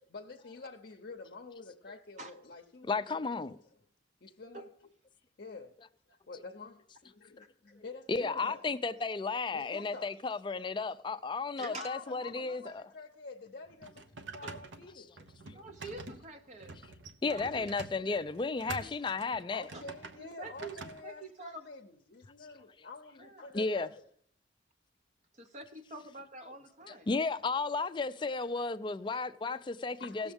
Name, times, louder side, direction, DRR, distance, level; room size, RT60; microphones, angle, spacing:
voice 1, 0.1-3.2 3.5-3.6 4.2-4.9 5.4-5.8 6.1-8.7 9.5-10.2 11.6-13.9 14.3-15.1 16.5-16.9 17.4-17.7 18.6-18.9 19.5-21.9 22.3-24.1 30.0-30.3, left 3 dB, 55° left, 0.6 m, -48 dB
voice 2, 2.8-3.6 7.4-7.5 8.1-12.8 15.5-15.6 17.2-19.7 23.5-23.9 26.9-30.3, left 4 dB, 25° left, 0.3 m, -34 dB
voice 3, 11.6-11.9 14.4-14.5 15.5-16.8 17.3-17.7 18.8-19.0 19.7-19.8 20.2-21.6 23.2-23.4 25.5-25.6 25.9-27.1, right 2 dB, 40° right, 0.6 m, -46 dB
sound 1, 13.6-21.0, right 3 dB, 90° right, 1.0 m, -47 dB
17.5 x 7.1 x 3.5 m
head